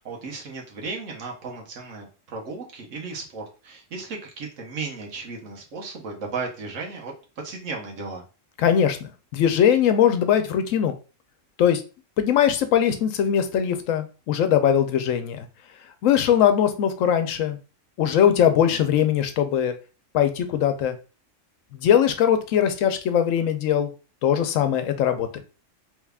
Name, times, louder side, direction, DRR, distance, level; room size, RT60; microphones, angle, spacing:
voice 1, 0.0-7.1 7.4-8.2, right 4 dB, 75° right, 0 dB, 1.3 m, -35 dB
voice 2, 8.6-10.9 11.6-11.8 12.2-15.5 16.0-17.6 18.0-19.7 20.1-21.0 21.7-23.9 24.2-25.4, left 9 dB, 90° left, 9 dB, 1.0 m, -21 dB
3.3 x 2.3 x 3.4 m, 0.33 s
omnidirectional pair, 1.3 m